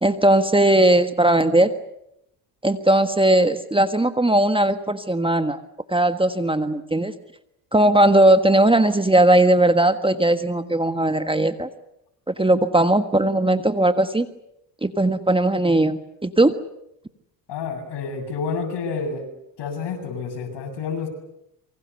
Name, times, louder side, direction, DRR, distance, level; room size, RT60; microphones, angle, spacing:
voice 1, 0.0-1.7 2.6-5.6 5.9-7.1 7.7-11.7 12.3-14.3 14.8-16.5, right 1 dB, 10° right, 9 dB, 1.5 m, -18 dB
voice 2, 17.5-19.2 19.6-21.1, left 5 dB, 65° left, 4 dB, 7.7 m, -29 dB
27.0 x 24.0 x 6.9 m, 0.80 s
hypercardioid pair, 60°, 46 cm